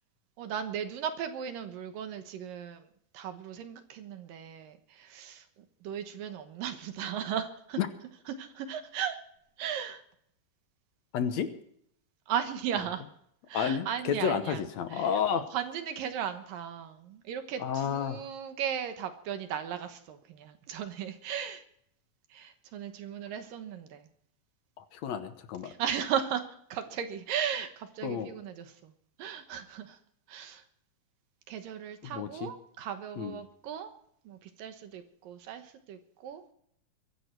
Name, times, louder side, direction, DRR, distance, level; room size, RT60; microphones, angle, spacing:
voice 1, 0.4-2.9 3.1-5.5 5.8-7.8 8.3-9.2 9.6-10.0 12.3-13.0 13.5-14.6 14.9-21.6 22.3-24.1 25.6-28.9 29.2-30.0 30.3-30.6 31.5-33.9 34.3-36.4, right 8 dB, 70° right, 8 dB, 2.7 m, -36 dB
voice 2, 11.1-11.5 13.5-15.5 17.6-18.2 24.8-25.7 28.0-28.3 32.0-32.5 33.2-33.4, left 8 dB, 65° left, 9 dB, 1.8 m, -31 dB
23.0 x 11.0 x 4.6 m, 0.68 s
omnidirectional pair, 4.3 m